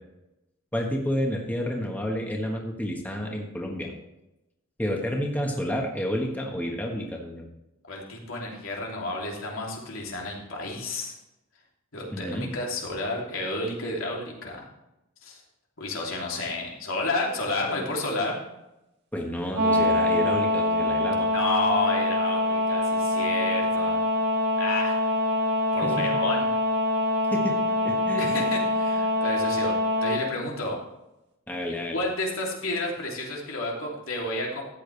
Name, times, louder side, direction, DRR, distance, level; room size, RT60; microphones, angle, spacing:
voice 1, 0.7-3.9 4.8-7.5 12.1-12.5 19.1-21.3 25.8-26.2 27.3-27.6 27.8-28.4 31.5-32.0, equal, 10° left, 0 dB, 1.4 m, -30 dB
voice 2, 7.9-11.1 11.9-14.7 15.2-15.4 15.8-18.4 21.3-24.0 24.6-25.0 25.7-26.5 28.2-29.7 30.0-30.8 31.9-34.6, left 2 dB, 85° left, -2 dB, 3.0 m, -31 dB
sound 1, 19.6-30.2, left 1 dB, 60° right, 2.1 m, -24 dB
13.5 x 8.9 x 3.4 m, 0.92 s
head